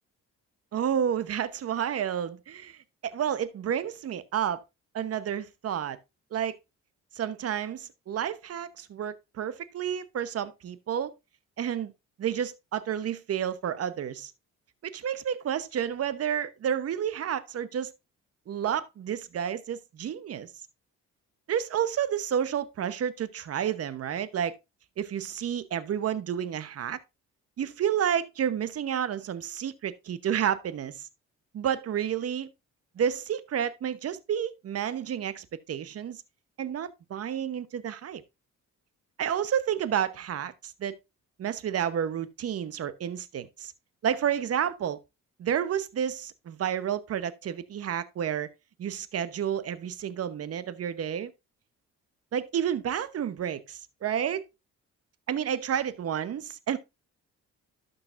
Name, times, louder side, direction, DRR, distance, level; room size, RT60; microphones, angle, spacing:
voice 1, 0.7-4.6 4.9-6.0 6.3-6.6 7.1-11.1 11.6-11.9 12.2-14.3 14.8-17.9 18.5-20.5 21.5-24.6 25.0-27.0 27.6-31.1 31.5-32.5 33.0-36.2 36.6-38.2 39.2-41.0 41.4-43.7 44.0-45.0 45.4-48.5 48.8-51.3 52.3-54.4 55.3-56.8, right 9 dB, 50° right, 1.0 m, -30 dB
12.0 x 6.7 x 2.5 m
cardioid pair, 90°, 30 cm